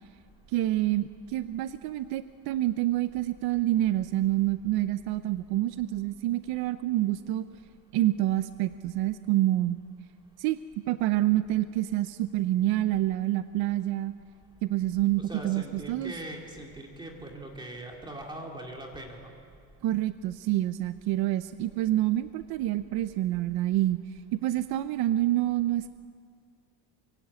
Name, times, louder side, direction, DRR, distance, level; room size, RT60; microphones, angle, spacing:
voice 1, 0.5-7.5 7.9-9.8 10.4-14.1 14.6-16.1 19.8-24.0 24.3-25.9, right 14 dB, 55° right, 12 dB, 0.7 m, -27 dB
voice 2, 15.2-19.3, right 1 dB, 10° right, 0 dB, 2.3 m, -41 dB
24.5 x 23.5 x 8.4 m, 2.2 s
cardioid pair, 175°, 47 cm